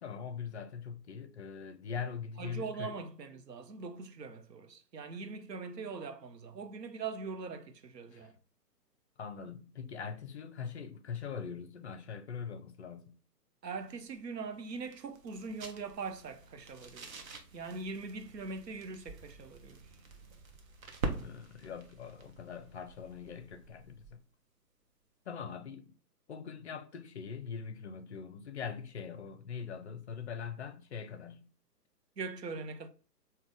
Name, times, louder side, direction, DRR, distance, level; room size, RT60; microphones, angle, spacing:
voice 1, 0.0-3.0 8.1-8.3 9.2-13.2 21.1-24.2 25.3-25.9 26.3-31.5, left 6 dB, 45° left, 0.5 m, -42 dB
voice 2, 2.4-8.3 13.6-17.1 17.5-19.9 32.2-32.9, right 4 dB, 90° right, 0.7 m, -42 dB
sound 1, 13.6-24.3, right 3 dB, 55° right, 0.9 m, -46 dB
3.5 x 2.8 x 3.6 m
figure-of-eight pair, 130°, 49 cm